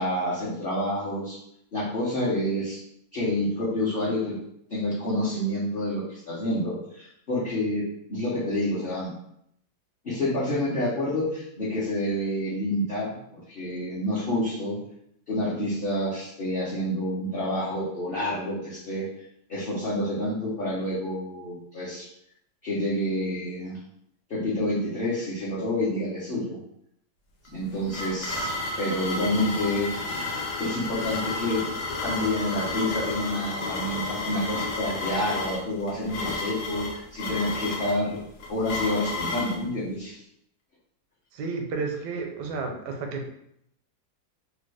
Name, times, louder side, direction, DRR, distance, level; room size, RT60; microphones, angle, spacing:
voice 1, 0.0-1.4 1.7-2.8 3.1-4.4 4.7-7.8 8.1-9.1 10.0-14.8 15.3-19.1 19.5-22.1 22.6-23.7 24.3-26.6 27.5-29.9 30.6-31.6 32.0-38.2 38.5-40.2, left 1 dB, 50° left, -9 dB, 0.7 m, -28 dB
sound 1, 27.4-39.6, left 2 dB, 90° left, 1.3 m, -32 dB
voice 2, 41.3-43.3, right 4 dB, 85° right, 3 dB, 1.2 m, -31 dB
3.0 x 2.2 x 3.3 m, 0.73 s
omnidirectional pair, 1.8 m